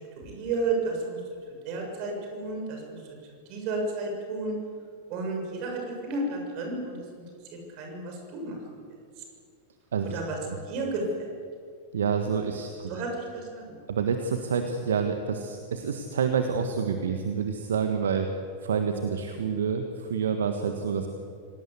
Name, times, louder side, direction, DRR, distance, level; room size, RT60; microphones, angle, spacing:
voice 1, 0.2-1.2 1.6-3.0 3.5-4.6 5.1-7.2 7.5-8.8 10.0-10.4 10.7-11.3 12.9-13.8, right 3 dB, 45° right, 2 dB, 7.2 m, -32 dB
voice 2, 11.9-12.9 13.9-18.3 18.6-21.1, right 6 dB, 65° right, 6 dB, 1.6 m, -28 dB
26.5 x 18.0 x 8.2 m, 2.2 s
figure-of-eight pair, 90°, 0 cm